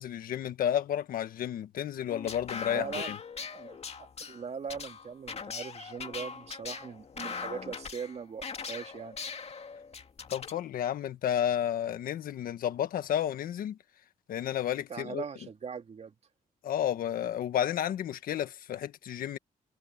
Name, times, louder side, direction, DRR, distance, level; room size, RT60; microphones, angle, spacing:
voice 1, 0.0-3.2 10.3-13.8 14.3-15.2 16.6-19.4, left 10 dB, 85° left, 1.5 m, -31 dB
sound 1, 2.1-10.6, left 5 dB, 45° left, 2.3 m, -41 dB
voice 2, 2.7-3.1 3.5-9.2 14.9-16.1, right 6 dB, 50° right, 2.3 m, -40 dB
cardioid pair, 90°, 14 cm